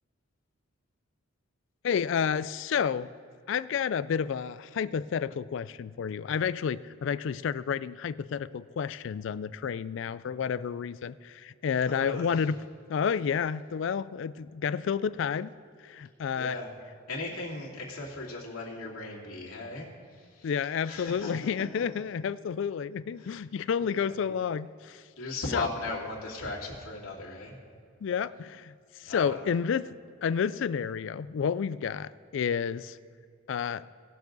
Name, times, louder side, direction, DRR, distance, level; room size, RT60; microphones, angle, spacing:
voice 1, 1.8-3.1 3.5-12.6 12.9-15.5 15.8-16.6 20.4-25.0 25.5-25.7 28.0-28.7 29.0-33.0 33.5-33.9, left 7 dB, 60° left, 17 dB, 0.3 m, -30 dB
voice 2, 11.8-12.4 16.3-16.7 17.1-19.9 20.2-20.5 20.8-21.3 21.6-21.7 23.2-23.4 23.8-24.1 25.2-27.5 29.0-29.3, left 2 dB, 85° left, -4 dB, 2.5 m, -37 dB
18.5 x 7.0 x 3.9 m, 2.3 s
head